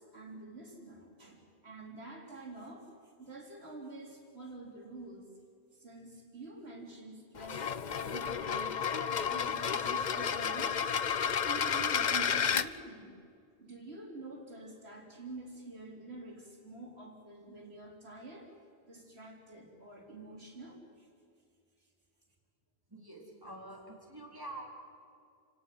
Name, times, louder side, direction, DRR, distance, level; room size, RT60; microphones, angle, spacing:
voice 1, 0.0-5.3 5.7-8.8 9.1-10.9 11.3-13.2 13.6-18.5 18.9-21.1 21.8-21.9, right 2 dB, 70° right, 1 dB, 4.2 m, -48 dB
sound 1, 7.4-12.7, left 7 dB, 45° left, 0.8 m, -31 dB
voice 2, 22.9-24.6, right 2 dB, 20° right, -1 dB, 4.3 m, -46 dB
29.5 x 17.5 x 7.9 m, 2.4 s
omnidirectional pair, 1.1 m